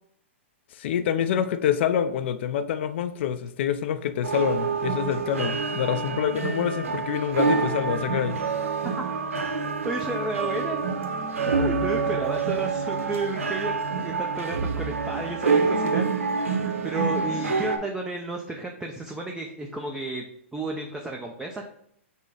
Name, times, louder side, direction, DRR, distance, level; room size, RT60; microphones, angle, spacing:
voice 1, 0.7-8.4 12.1-12.2, left 9 dB, 60° left, 10 dB, 0.4 m, -26 dB
sound 1, 4.2-17.8, right 5 dB, 85° right, 0.7 m, -27 dB
voice 2, 9.8-10.8 11.5-16.0 16.8-20.3 20.5-21.7, right 2 dB, 5° right, 1 dB, 0.4 m, -32 dB
5.3 x 2.0 x 4.8 m, 0.70 s
hypercardioid pair, 135°, 7 cm